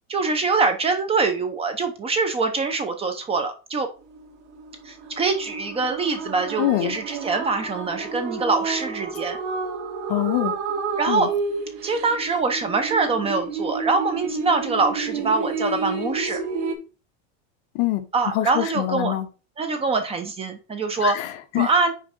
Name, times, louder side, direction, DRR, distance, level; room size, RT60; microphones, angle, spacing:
voice 1, 0.1-3.9 4.8-9.4 11.0-11.3 11.8-16.4 18.1-19.1 19.6-21.2 21.6-21.9, right 4 dB, 15° right, 0.7 m, -24 dB
sound 1, 4.0-16.7, right 4 dB, 75° right, 1.8 m, -30 dB
voice 2, 6.6-7.0 10.1-10.5 11.1-11.3 17.7-18.1 18.3-19.3 21.0-21.7, left 15 dB, 45° left, 0.9 m, -24 dB
5.6 x 4.7 x 4.4 m
supercardioid pair, 160°, 35 cm